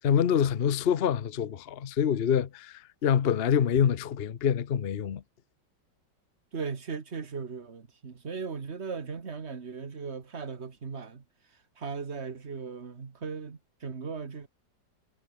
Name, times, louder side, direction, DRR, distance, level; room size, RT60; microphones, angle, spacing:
voice 1, 0.0-5.2, left 8 dB, 45° left, 0.8 m, -26 dB
voice 2, 6.5-11.2 11.8-14.5, right 5 dB, 35° right, 1.8 m, -37 dB
omnidirectional pair, 2.0 m